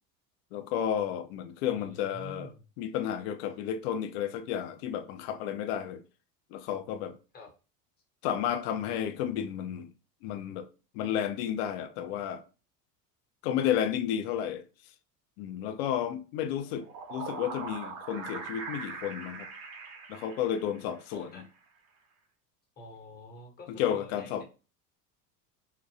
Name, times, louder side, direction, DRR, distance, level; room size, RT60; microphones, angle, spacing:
voice 1, 0.5-2.5 2.8-6.0 6.5-7.2 8.2-9.9 10.2-10.7 10.9-12.4 13.4-14.6 15.4-16.8 17.1-19.5 20.1-21.3 23.7-24.4, left 9 dB, 45° left, 0.4 m, -32 dB
voice 2, 1.7-2.6 7.3-7.5 21.1-21.4 22.8-24.4, left 2 dB, 20° left, 0.8 m, -47 dB
sound 1, 16.6-21.1, right 4 dB, 50° right, 0.7 m, -41 dB
2.6 x 2.1 x 2.7 m
figure-of-eight pair, 70°, 48 cm